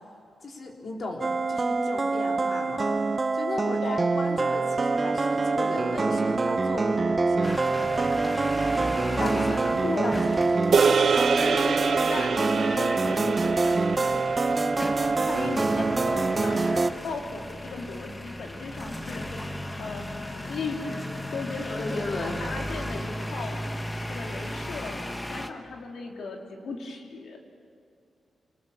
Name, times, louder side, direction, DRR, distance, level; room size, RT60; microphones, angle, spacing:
voice 1, 0.4-3.0 3.3-7.7 9.2-10.6 21.8-22.4, left 2 dB, 50° left, 1 dB, 3.8 m, -36 dB
sound 1, 1.2-16.9, right 3 dB, 30° right, 0.9 m, -25 dB
voice 2, 3.6-4.1 9.8-10.4 11.4-19.3 19.8-20.1 20.5-23.6 24.1-25.0 25.3-27.4, left 3 dB, 80° left, 1 dB, 3.1 m, -37 dB
sound 2, 7.4-25.5, left 1 dB, 15° left, 1.3 m, -36 dB
sound 3, 10.7-15.2, right 5 dB, 60° right, 0.9 m, -26 dB
26.5 x 20.0 x 7.2 m, 2.5 s
wide cardioid pair, 125°, 0 cm